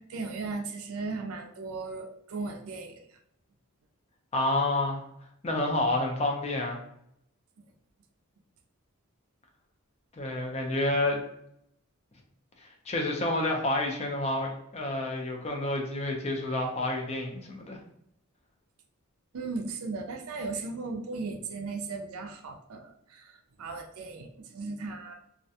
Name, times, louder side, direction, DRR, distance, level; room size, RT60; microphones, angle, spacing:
voice 1, 0.0-3.0 19.3-25.1, right 3 dB, 70° right, 4 dB, 0.4 m, -37 dB
voice 2, 4.3-5.0 5.4-6.8 10.1-11.2 12.6-17.8, left 2 dB, 30° left, 1 dB, 0.5 m, -29 dB
2.4 x 2.1 x 2.7 m, 0.75 s
head